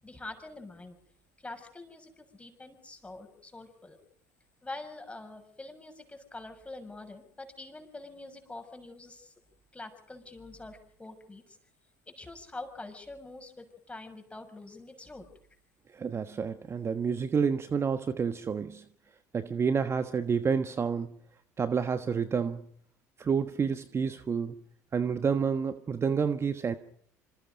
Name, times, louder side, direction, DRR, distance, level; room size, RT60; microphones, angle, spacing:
voice 1, 0.0-1.0 1.4-4.0 4.6-9.3 9.7-11.6 12.1-15.3, left 2 dB, 15° left, 6.6 m, -45 dB
voice 2, 15.9-18.8 19.3-21.1 21.6-22.6 23.2-24.5 24.9-26.7, right 6 dB, 30° right, 1.3 m, -29 dB
27.0 x 26.5 x 5.3 m
figure-of-eight pair, 65°, 9 cm